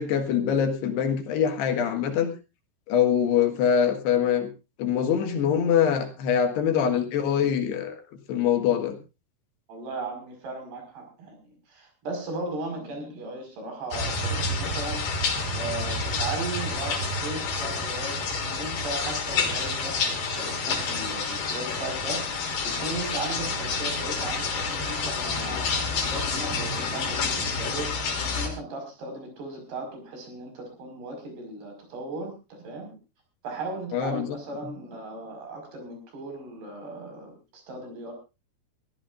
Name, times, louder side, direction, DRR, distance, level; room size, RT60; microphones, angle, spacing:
voice 1, 0.0-2.3 2.9-4.5 4.8-8.0 8.3-9.0 33.9-34.3, left 8 dB, 80° left, 6 dB, 3.7 m, -24 dB
voice 2, 9.7-15.0 15.4-32.3 32.6-32.9 33.4-38.1, right 2 dB, 75° right, 3 dB, 7.3 m, -37 dB
sound 1, 13.9-28.5, left 4 dB, 60° left, 4.5 m, -29 dB
23.5 x 15.0 x 2.6 m, 0.29 s
omnidirectional pair, 4.8 m